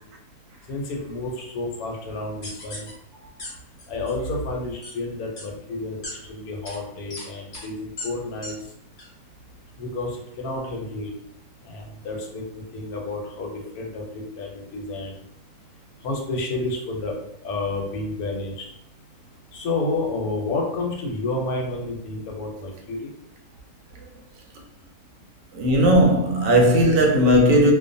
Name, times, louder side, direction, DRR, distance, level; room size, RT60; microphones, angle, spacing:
voice 1, 0.7-2.9 3.9-8.5 9.8-11.1 11.6-15.1 16.0-17.2 17.4-18.7 19.5-23.1, left 2 dB, 80° left, 1.1 m, -30 dB
sound 1, 2.4-2.9 3.4-3.5 3.8-4.1 4.8-4.9 5.4-5.5 6.0-6.1 6.6-6.8 7.1-7.2 7.5-7.7 8.0-8.1 8.4-8.5 9.0-9.1, left 2 dB, 45° left, 0.7 m, -36 dB
voice 2, 25.5-27.7, equal, 70° right, 0.9 m, -17 dB
2.4 x 2.2 x 2.6 m
omnidirectional pair, 1.6 m